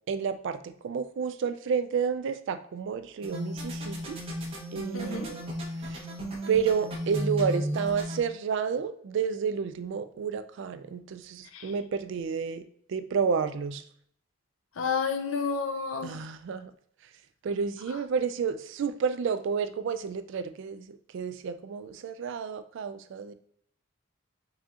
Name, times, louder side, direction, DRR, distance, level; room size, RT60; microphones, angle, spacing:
voice 1, 0.1-4.2 4.7-5.5 5.8-6.1 6.5-13.8 16.0-16.7 17.4-23.3, right 6 dB, 60° right, 0.3 m, -30 dB
sound 1, 3.2-8.2, equal, 25° right, 0.9 m, -34 dB
voice 2, 4.9-5.4 11.5-11.7 14.8-16.3, left 5 dB, 70° left, 0.5 m, -31 dB
4.1 x 3.5 x 2.4 m
head